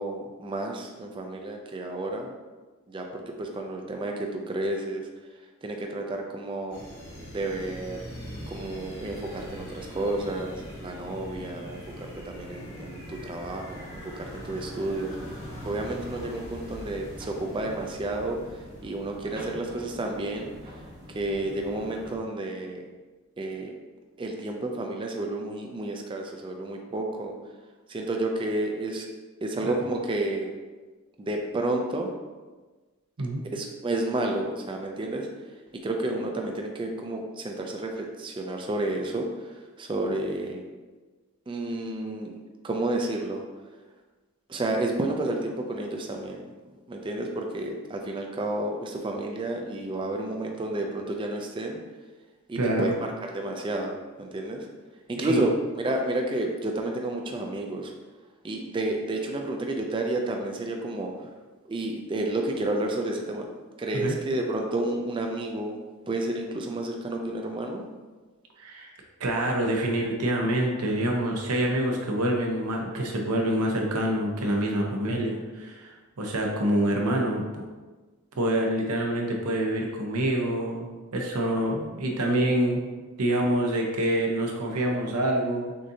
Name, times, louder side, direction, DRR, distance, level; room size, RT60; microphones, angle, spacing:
voice 1, 0.0-2.3 2.9-5.1 5.6-6.8 7.3-8.0 8.5-11.8 12.3-15.3 15.6-18.4 18.8-20.5 21.1-22.8 23.4-23.7 24.2-27.3 27.9-29.1 29.4-30.5 31.2-32.1 33.5-35.3 35.8-39.5 39.8-40.6 41.5-42.3 42.6-43.4 44.5-46.5 46.9-51.8 52.5-52.9 53.3-54.7 55.1-55.5 55.8-57.9 58.4-61.1 61.7-63.5 63.8-65.8 66.1-67.8, right 2 dB, 20° right, 2 dB, 0.3 m, -31 dB
sound 1, 6.7-19.0, equal, 75° left, 1.4 m, -42 dB
sound 2, 9.1-22.2, equal, 45° right, 1.1 m, -46 dB
voice 2, 52.6-52.9 55.2-55.5 63.9-64.2 68.6-68.9 69.2-77.6 78.4-82.8 83.2-85.7, right 1 dB, 90° right, 0 dB, 0.8 m, -26 dB
6.2 x 2.7 x 2.7 m, 1.3 s
head